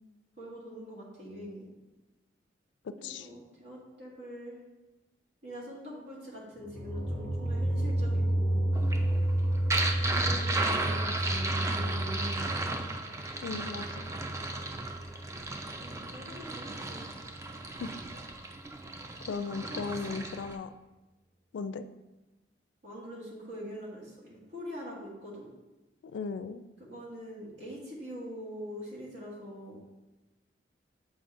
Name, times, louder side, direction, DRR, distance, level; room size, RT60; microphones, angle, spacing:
voice 1, 0.4-1.7 3.0-4.6 5.4-8.7 10.1-12.5 15.8-17.0 19.6-20.2 22.8-25.5 26.8-29.8, equal, 75° right, -5 dB, 1.9 m, -43 dB
voice 2, 2.8-3.3 13.4-14.0 17.8-17.9 19.2-20.7 21.5-21.9 26.1-26.6, left 4 dB, 80° left, 12 dB, 0.3 m, -37 dB
sound 1, 6.6-15.5, right 1 dB, 30° right, 1.3 m, -31 dB
sound 2, 8.7-20.6, right 2 dB, 15° right, 0.3 m, -35 dB
7.4 x 5.1 x 2.6 m, 1.1 s
head